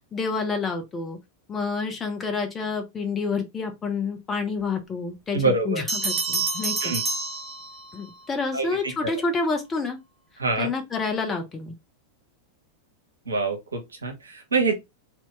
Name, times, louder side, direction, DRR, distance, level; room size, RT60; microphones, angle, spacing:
voice 1, 0.1-1.2 1.5-6.9 7.9-10.0 10.6-11.7, left 4 dB, 20° left, 0.9 m, -28 dB
voice 2, 5.3-5.8 6.8-7.0 8.5-9.1 10.4-10.7 13.3-14.8, right 3 dB, 75° right, 0.9 m, -25 dB
Bell, 5.9-8.1, right 4 dB, 5° right, 1.0 m, -28 dB
3.0 x 2.7 x 3.3 m
figure-of-eight pair, 90°, 0 cm